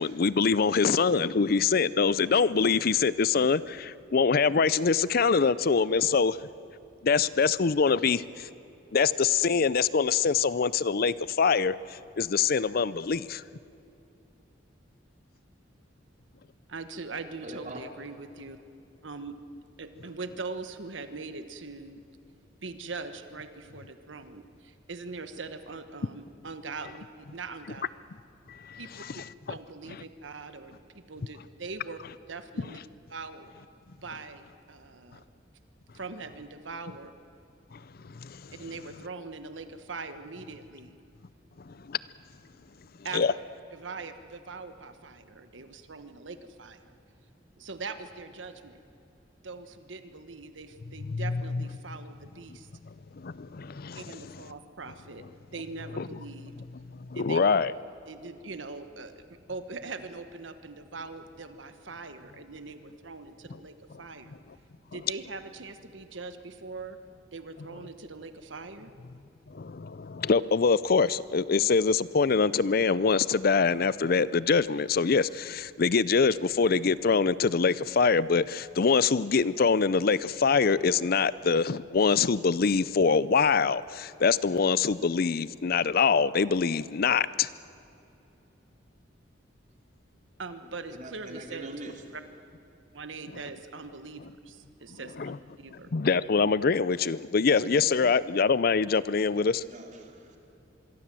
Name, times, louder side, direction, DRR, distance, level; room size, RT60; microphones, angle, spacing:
voice 1, 0.0-6.4 7.0-8.5 8.9-13.4 28.5-29.2 37.7-37.8 38.2-38.4 41.7-42.0 43.1-43.3 51.1-51.6 53.2-54.2 56.0-56.1 57.1-57.7 69.5-87.5 95.2-95.4 95.9-99.6, left 5 dB, 55° left, 18 dB, 0.5 m, -24 dB
voice 2, 16.7-18.6 19.0-19.4 19.8-22.0 22.6-27.8 28.8-28.9 29.1-29.2 29.5-32.0 32.3-32.8 33.1-33.5 34.0-35.2 35.9-37.1 38.6-41.0 43.0-43.2 43.7-46.9 47.6-48.8 49.4-52.7 54.0-55.2 55.5-56.5 57.1-57.5 58.1-64.3 64.9-67.0 67.3-68.9 90.4-91.7 92.1-92.2 92.9-95.9 97.9-98.1, right 4 dB, 90° right, 9 dB, 1.2 m, -41 dB
voice 3, 17.4-18.0 90.9-92.0 99.6-100.5, right 1 dB, 40° right, 2 dB, 3.4 m, -43 dB
26.0 x 23.0 x 7.6 m, 2.8 s
head